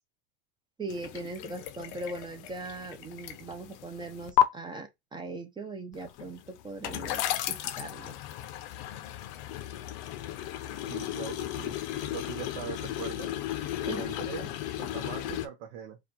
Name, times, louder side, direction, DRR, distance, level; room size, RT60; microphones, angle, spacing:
voice 1, 0.8-8.1 13.9-14.0, right 2 dB, 15° right, 0.5 m, -40 dB
sound 1, 0.9-4.4 5.9-15.5, left 12 dB, 60° left, 0.6 m, -34 dB
voice 2, 10.9-11.8 12.1-13.3 13.8-16.0, right 9 dB, 70° right, 0.9 m, -41 dB
4.8 x 2.3 x 2.9 m
supercardioid pair, 135°, 32 cm